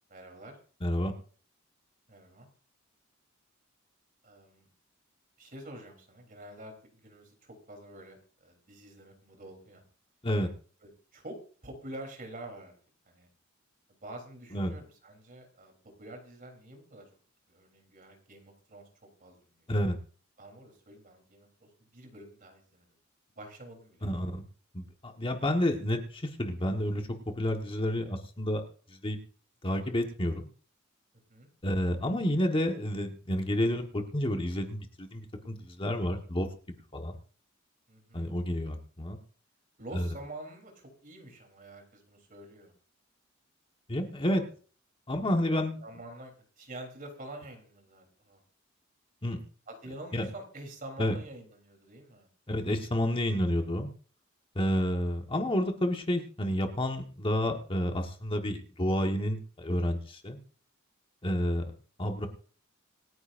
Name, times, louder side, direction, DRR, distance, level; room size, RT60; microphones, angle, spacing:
voice 1, 0.1-0.6 2.1-2.5 4.2-4.7 5.4-9.8 10.8-11.4 11.6-12.7 13.1-13.3 13.9-17.2 17.5-19.7 20.4-22.9 23.4-24.1 31.3-31.5 37.1-37.2 37.9-38.3 39.8-42.7 44.4-44.5 45.8-48.4 49.7-52.3, right 1 dB, 45° right, 4 dB, 3.5 m, -47 dB
voice 2, 0.8-1.1 10.2-10.5 14.5-14.7 19.7-20.0 24.0-24.4 24.7-27.1 27.4-28.6 29.0-29.2 29.6-30.5 31.6-36.5 36.9-37.2 38.1-39.2 39.9-40.1 43.9-44.4 45.1-45.8 49.2-49.4 50.1-50.3 51.0-51.1 52.5-53.9 54.5-60.4 61.2-61.6 62.0-62.3, equal, 25° left, 4 dB, 1.4 m, -30 dB
26.5 x 9.7 x 2.6 m, 0.41 s
head